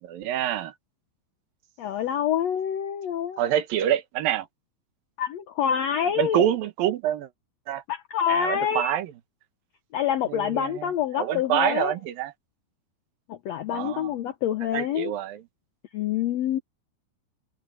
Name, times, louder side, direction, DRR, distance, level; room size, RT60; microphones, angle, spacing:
voice 1, 0.0-0.7 3.4-4.5 6.2-7.3 7.7-7.8 8.3-9.1 10.3-12.3 13.7-14.1 14.7-15.4, right 11 dB, 75° right, 3.0 m, -26 dB
voice 2, 1.8-3.4 5.2-6.5 7.9-8.9 9.9-11.9 13.3-15.1 15.9-16.6, left 9 dB, 90° left, 1.5 m, -26 dB
omnidirectional pair, 4.2 m